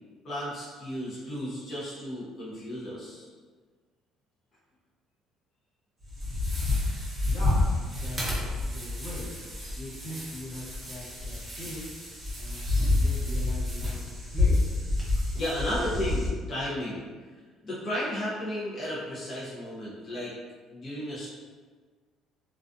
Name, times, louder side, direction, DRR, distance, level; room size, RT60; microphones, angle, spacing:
voice 1, 0.2-3.3 15.3-17.0 17.6-20.3 20.7-21.3, equal, 30° left, -9 dB, 0.6 m, -33 dB
sound 1, 6.0-16.3, left 2 dB, 15° right, 0.7 m, -29 dB
voice 2, 7.2-9.4 9.8-11.9 12.3-14.6, left 1 dB, 75° left, -8 dB, 1.1 m, -41 dB
2.3 x 2.3 x 2.5 m, 1.5 s
cardioid pair, 150°, 0 cm